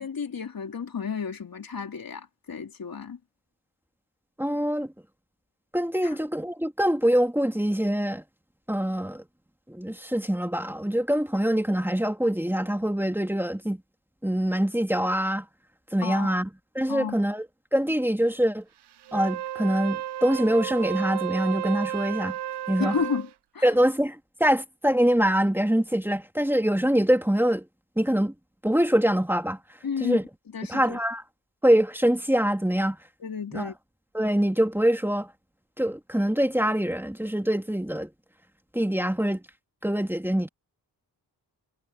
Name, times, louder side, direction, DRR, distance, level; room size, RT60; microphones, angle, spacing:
voice 1, 0.0-3.2 16.0-16.4 16.9-17.2 22.8-23.7 29.8-30.2 30.5-31.0 33.2-33.7, left 6 dB, 55° left, 3.6 m, -32 dB
voice 2, 4.4-4.9 5.7-8.2 8.7-9.2 9.7-13.8 14.2-15.4 15.9-16.5 16.7-17.5 17.7-18.6 19.1-22.4 22.7-23.0 23.6-27.7 28.0-28.3 28.6-29.6 30.0-30.2 30.7-31.2 31.6-33.0 33.5-33.7 34.1-35.3 35.8-38.1 38.7-39.4 39.8-40.5, equal, 5° right, 2.8 m, -24 dB
Wind instrument woodwind instrument, 19.0-23.3, right 13 dB, 75° right, 0.8 m, -33 dB
cardioid pair, 75°, 41 cm